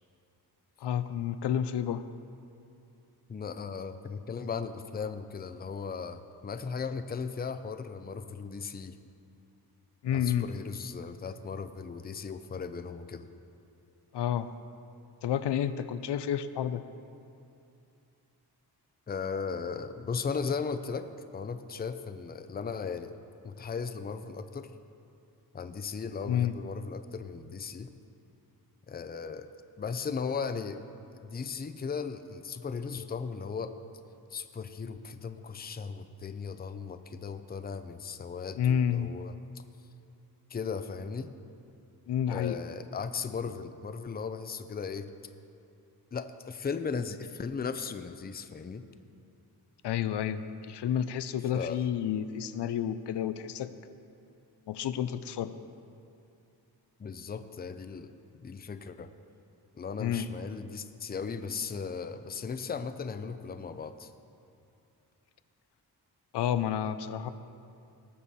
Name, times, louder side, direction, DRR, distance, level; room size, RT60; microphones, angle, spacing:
voice 1, 0.8-2.0 10.0-10.5 14.1-14.5 15.2-16.8 26.3-26.5 38.6-39.1 42.1-42.6 49.8-53.7 54.7-55.6 60.0-60.3 66.3-67.3, left 9 dB, 90° left, 12 dB, 0.6 m, -30 dB
voice 2, 3.3-9.0 10.1-13.3 19.1-21.1 21.3-23.1 23.4-24.7 25.5-27.9 28.9-29.5 29.8-30.8 31.2-33.7 34.3-39.3 40.5-41.3 42.3-45.1 46.1-48.8 51.5-51.8 57.0-59.1 59.7-64.1, left 5 dB, 25° left, 10 dB, 0.5 m, -37 dB
18.5 x 6.9 x 4.2 m, 2.6 s
wide cardioid pair, 110°, 40 cm